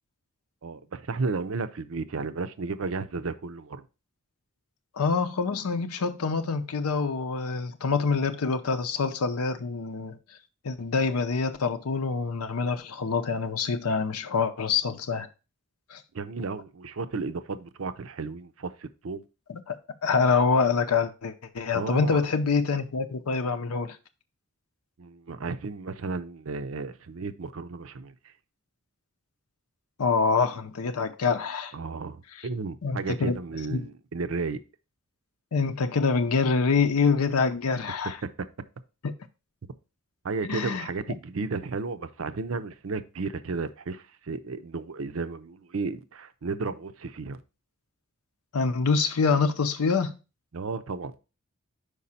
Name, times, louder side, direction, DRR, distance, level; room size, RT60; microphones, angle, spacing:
voice 1, 0.6-3.8 16.1-19.2 21.7-22.2 25.0-28.3 31.7-34.6 38.2-38.3 40.2-47.4 50.5-51.1, right 4 dB, 65° right, 0.6 m, -33 dB
voice 2, 4.9-10.2 10.6-15.3 15.9-16.0 19.5-19.7 20.0-24.0 30.0-31.7 32.8-33.4 33.7-33.9 35.5-38.2 39.0-39.1 40.5-40.9 48.5-50.1, left 5 dB, 85° left, 0.6 m, -26 dB
5.3 x 4.9 x 4.2 m
head